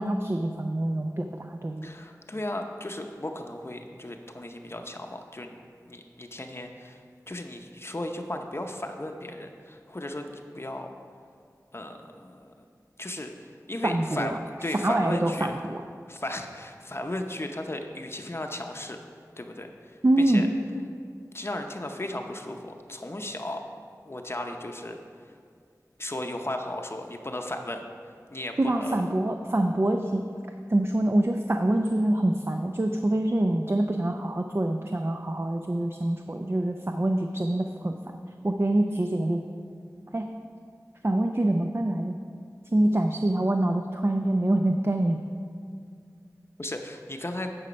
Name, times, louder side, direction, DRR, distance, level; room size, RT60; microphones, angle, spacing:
voice 1, 0.0-1.9 13.8-14.4 14.7-15.8 20.0-20.5 28.6-30.3 30.7-38.2 38.4-39.4 40.1-40.3 41.0-42.2 42.7-45.2, right 1 dB, 40° right, 4 dB, 0.5 m, -25 dB
voice 2, 1.8-5.6 5.8-7.0 7.3-10.9 11.7-12.5 13.0-15.5 16.1-19.0 19.4-20.0 20.3-20.5 21.3-23.6 24.0-25.0 26.0-27.8 28.3-29.0 46.6-47.5, left 1 dB, 40° left, 4 dB, 0.7 m, -35 dB
9.8 x 5.6 x 5.2 m, 2.1 s
wide cardioid pair, 50°, 7 cm